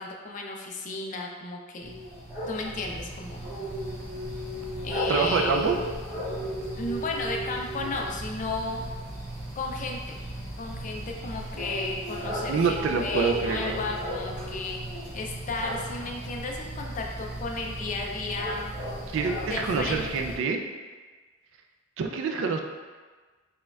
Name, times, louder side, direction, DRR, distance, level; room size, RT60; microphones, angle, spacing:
voice 1, 0.0-1.9 2.5-3.4 4.8-5.8 6.8-8.8 9.5-10.2 10.6-14.8 15.1-18.7 19.4-20.3, left 3 dB, 40° left, 1 dB, 0.4 m, -33 dB
sound 1, 1.8-20.4, equal, 10° right, 1.3 m, -36 dB
voice 2, 5.1-5.8 12.5-13.8 19.1-20.6 22.0-22.6, right 5 dB, 65° right, 4 dB, 0.3 m, -26 dB
4.2 x 2.2 x 2.3 m, 1.4 s
head